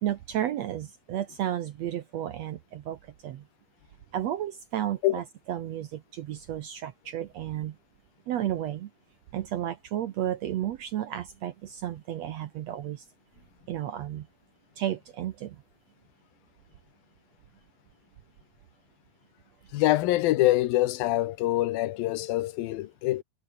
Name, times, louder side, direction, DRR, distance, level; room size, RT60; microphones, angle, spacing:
voice 1, 0.0-3.4 4.1-7.7 8.3-8.9 9.3-13.0 13.7-14.3 14.8-15.6, right 11 dB, 70° right, 1.7 m, -32 dB
voice 2, 19.7-23.2, left 16 dB, 90° left, 2.8 m, -25 dB
omnidirectional pair, 4.1 m